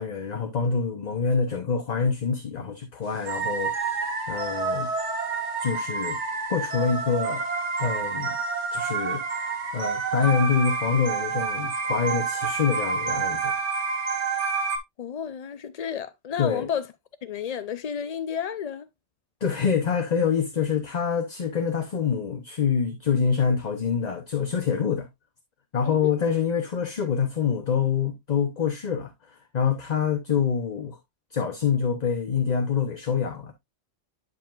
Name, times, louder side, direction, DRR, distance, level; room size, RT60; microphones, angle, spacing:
voice 1, 0.0-3.7 4.3-4.9 5.6-6.2 6.5-7.4 7.8-8.4 8.7-9.2 9.7-13.5 16.4-16.7 19.4-25.1 25.7-31.0 31.3-33.5, left 6 dB, 40° left, 0.9 m, -26 dB
sound 1, 3.3-14.8, right 5 dB, 65° right, 1.6 m, -28 dB
voice 2, 15.0-16.9 17.2-18.9 25.8-26.1, left 8 dB, 70° left, 0.3 m, -31 dB
10.5 x 5.5 x 2.4 m
omnidirectional pair, 1.3 m